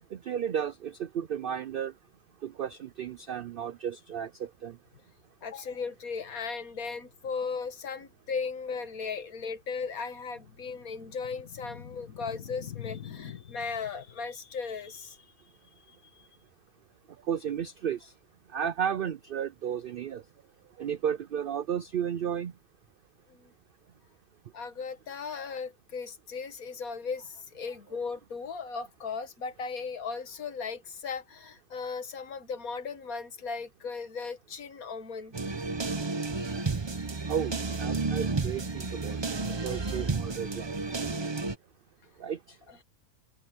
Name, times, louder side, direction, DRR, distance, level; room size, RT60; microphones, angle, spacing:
voice 1, 0.1-1.9 2.4-4.8 17.3-18.1 18.5-20.2 20.8-22.5 37.3-39.2 39.6-41.2 42.2-42.4, right 8 dB, 90° right, 0.4 m, -33 dB
voice 2, 5.4-15.3 15.9-16.3 23.3-23.5 24.5-35.3, left 5 dB, 70° left, 1.9 m, -37 dB
sound 1, 35.3-41.5, right 3 dB, 25° right, 0.7 m, -32 dB
omnidirectional pair, 1.5 m